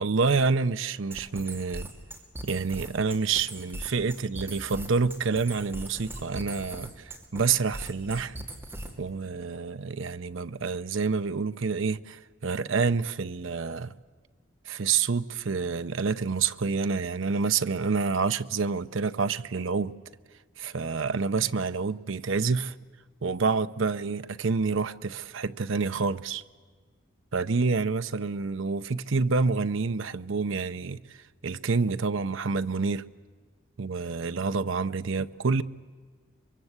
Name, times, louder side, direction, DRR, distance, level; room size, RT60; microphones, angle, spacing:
voice 1, 0.0-1.9 2.4-8.4 9.0-13.9 14.7-19.9 20.6-22.7 23.2-26.4 27.3-31.0 31.4-33.1 33.8-35.6, right 4 dB, 75° right, 0.7 m, -28 dB
sound 1, 1.1-9.1, right 1 dB, 10° right, 2.5 m, -40 dB
24.0 x 22.5 x 8.1 m
head